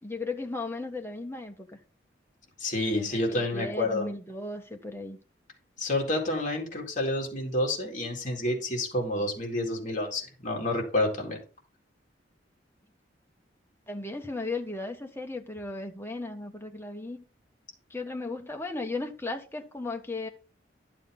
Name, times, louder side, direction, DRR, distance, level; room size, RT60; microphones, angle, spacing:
voice 1, 0.0-1.8 2.9-5.2 13.9-17.2 17.9-20.3, left 2 dB, 15° left, 1.4 m, -36 dB
voice 2, 2.6-4.1 5.8-11.4, left 1 dB, 40° left, 3.9 m, -29 dB
12.0 x 7.6 x 3.9 m
head